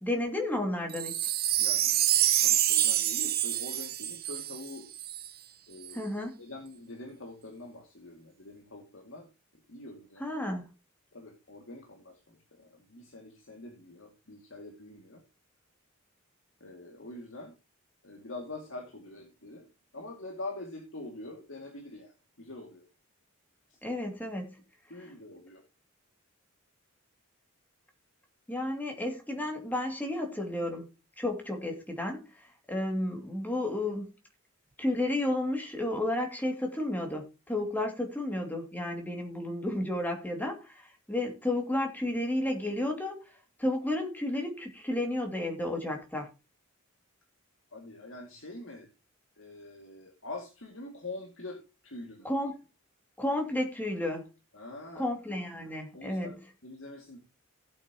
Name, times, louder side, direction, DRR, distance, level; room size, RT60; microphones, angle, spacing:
voice 1, 0.0-1.3 5.9-6.3 10.2-10.6 23.8-24.6 28.5-30.9 31.2-34.1 34.8-43.3 43.6-46.3 52.2-52.6 53.2-54.3 55.0-56.3, left 1 dB, 10° left, 2.5 m, -32 dB
Wind chime, 0.9-5.3 5.8-5.9, right 12 dB, 45° right, 1.0 m, -27 dB
voice 2, 1.6-2.1 2.4-4.9 5.7-9.3 9.7-10.3 11.1-15.2 16.6-17.5 18.0-19.6 19.9-22.8 23.7-23.8 24.9-25.6 28.5-28.6 47.7-48.9 49.4-52.3 54.5-55.1 55.9-57.2, left 2 dB, 65° left, 2.4 m, -45 dB
16.5 x 8.2 x 3.0 m
head